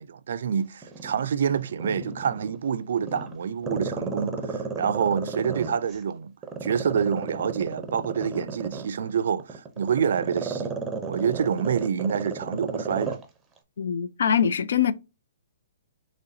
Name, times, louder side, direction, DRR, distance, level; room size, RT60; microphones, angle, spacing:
voice 1, 0.0-6.3 6.6-13.2, right 7 dB, 65° right, 0.3 m, -27 dB
Growling, 0.8-2.6 3.0-6.0 6.4-13.2 13.6-13.7, right 4 dB, 10° right, 0.6 m, -33 dB
voice 2, 13.8-14.9, left 8 dB, 70° left, 0.4 m, -23 dB
4.0 x 3.1 x 2.6 m
hypercardioid pair, 160°, 0 cm